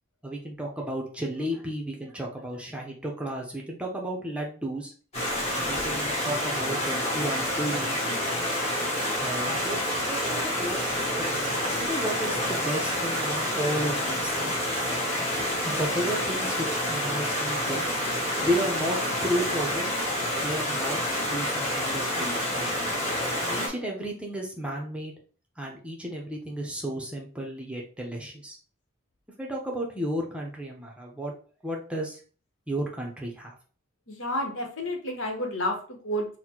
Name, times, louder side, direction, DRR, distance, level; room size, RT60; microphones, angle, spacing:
voice 1, 0.2-4.9 5.6-8.0 9.2-14.6 15.6-17.9 18.4-20.1 20.4-22.9 23.5-25.1 25.6-28.6 29.4-31.3 31.6-32.2 32.7-33.5, right 1 dB, 5° right, -1 dB, 0.7 m, -33 dB
Stream, 5.1-23.7, left 1 dB, 30° left, 1.4 m, -28 dB
voice 2, 34.1-36.3, left 1 dB, 70° left, 2 dB, 1.1 m, -30 dB
4.1 x 2.2 x 4.4 m, 0.41 s
head